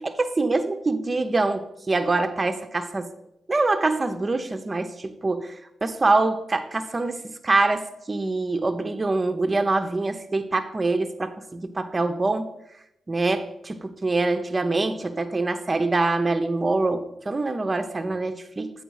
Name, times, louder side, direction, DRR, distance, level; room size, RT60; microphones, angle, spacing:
voice 1, 0.0-3.1 3.5-5.5 5.8-12.5 13.1-18.7, right 3 dB, 35° right, 8 dB, 0.8 m, -25 dB
7.8 x 4.8 x 4.8 m, 0.83 s
supercardioid pair, 50°, 0 cm